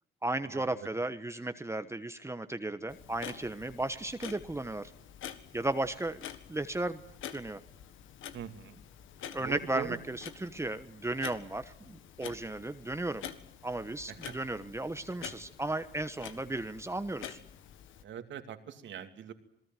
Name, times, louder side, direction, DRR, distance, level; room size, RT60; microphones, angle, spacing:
voice 1, 0.2-4.9 5.5-7.0 7.3-7.6 9.3-13.3 13.6-17.4, right 2 dB, 15° right, 10 dB, 1.2 m, -35 dB
Clock, 2.9-18.0, left 9 dB, 80° left, 1.7 m, -48 dB
voice 2, 8.3-8.8 9.4-10.0 14.1-14.3 18.0-19.3, right 9 dB, 70° right, 8 dB, 2.6 m, -42 dB
27.5 x 19.0 x 9.2 m, 0.71 s
cardioid pair, 90°, 20 cm